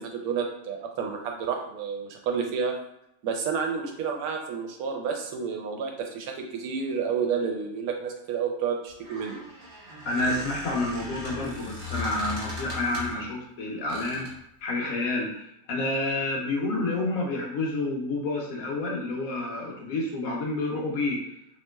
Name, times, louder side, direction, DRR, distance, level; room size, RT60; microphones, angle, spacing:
voice 1, 0.0-2.8 3.2-9.4, right 6 dB, 75° right, 3 dB, 1.0 m, -30 dB
Squeak, 8.9-13.3 13.9-14.4, left 2 dB, 55° right, 1.1 m, -38 dB
voice 2, 10.0-14.3 14.6-21.2, left 2 dB, 65° left, -2 dB, 1.1 m, -29 dB
2.9 x 2.9 x 2.2 m, 0.82 s
omnidirectional pair, 1.6 m